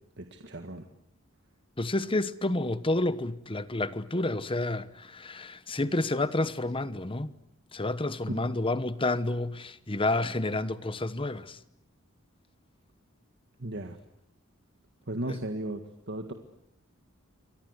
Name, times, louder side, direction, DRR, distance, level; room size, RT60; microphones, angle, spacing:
voice 1, 0.2-0.8 8.3-8.5 13.6-14.0 15.1-16.3, right 1 dB, 55° right, 1.8 m, -36 dB
voice 2, 1.8-7.3 7.7-11.6 15.3-15.4, left 2 dB, 25° left, 1.2 m, -30 dB
29.5 x 23.5 x 8.1 m
head